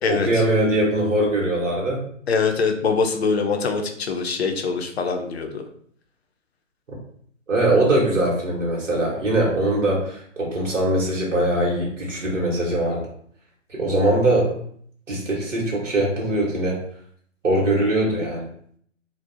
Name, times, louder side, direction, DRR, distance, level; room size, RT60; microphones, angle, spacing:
voice 1, 0.1-2.1 7.5-13.1 13.7-14.6 15.1-16.8 17.4-18.5, right 1 dB, 70° right, -3 dB, 0.9 m, -21 dB
voice 2, 2.3-5.6, left 5 dB, 55° left, 5 dB, 0.5 m, -23 dB
2.5 x 2.0 x 2.5 m, 0.63 s
figure-of-eight pair, 130°, 38 cm